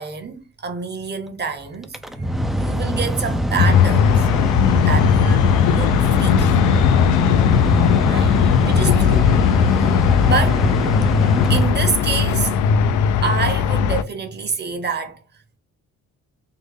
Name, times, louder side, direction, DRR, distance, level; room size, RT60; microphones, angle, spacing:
voice 1, 0.0-4.3 4.8-6.6 8.0-9.3 9.6-10.6 11.5-12.6 13.2-15.2, right 5 dB, 35° right, 0.9 m, -27 dB
Mechanical fan, 1.8-12.4, right 1 dB, ahead, 0.3 m, -23 dB
sound 1, 3.6-14.0, left 8 dB, 80° left, 0.5 m, -17 dB
3.7 x 2.0 x 3.4 m
cardioid pair, 90°, 30 cm